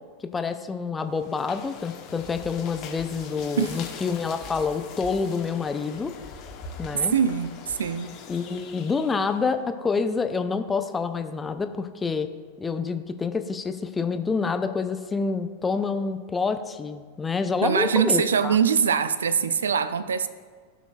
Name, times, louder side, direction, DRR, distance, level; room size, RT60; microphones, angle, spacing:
voice 1, 0.3-6.1 6.8-7.1 8.3-12.3 12.6-18.6, left 5 dB, 15° left, 9 dB, 0.5 m, -27 dB
sound 1, 1.1-9.5, left 5 dB, 35° left, 1.2 m, -42 dB
voice 2, 7.1-8.1 17.6-20.3, right 7 dB, 65° right, 14 dB, 0.4 m, -23 dB
16.5 x 6.0 x 2.4 m, 1.5 s
figure-of-eight pair, 90°, 0 cm